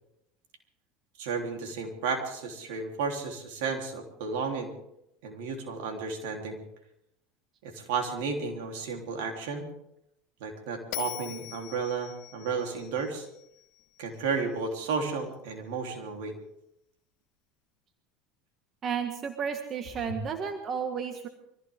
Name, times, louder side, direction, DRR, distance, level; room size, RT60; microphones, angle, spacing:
voice 1, 1.2-4.7 5.2-6.6 7.6-9.7 10.4-13.2 14.0-16.3 20.1-20.2, right 5 dB, 75° right, 3 dB, 3.6 m, -33 dB
Bell, 10.9-14.2, left 19 dB, 65° left, 1.3 m, -42 dB
voice 2, 18.8-21.3, right 7 dB, 40° right, 6 dB, 1.8 m, -32 dB
24.0 x 15.5 x 3.8 m, 0.79 s
hypercardioid pair, 90°, 0 cm